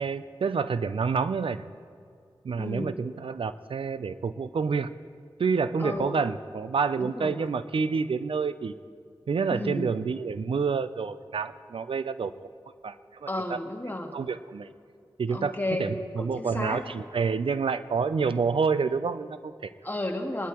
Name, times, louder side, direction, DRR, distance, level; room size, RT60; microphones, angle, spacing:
voice 1, 0.0-1.6 2.4-4.9 5.4-8.7 9.3-12.5 12.8-12.9 13.2-13.6 14.1-14.7 15.2-19.7, right 5 dB, 70° right, 13 dB, 0.5 m, -28 dB
voice 2, 2.6-2.9 5.8-6.1 7.0-7.5 9.5-9.9 13.3-14.1 15.3-16.8 19.8-20.5, left 1 dB, 20° left, 2 dB, 1.7 m, -32 dB
21.0 x 11.5 x 3.0 m, 2.3 s
cardioid pair, 40°, 9 cm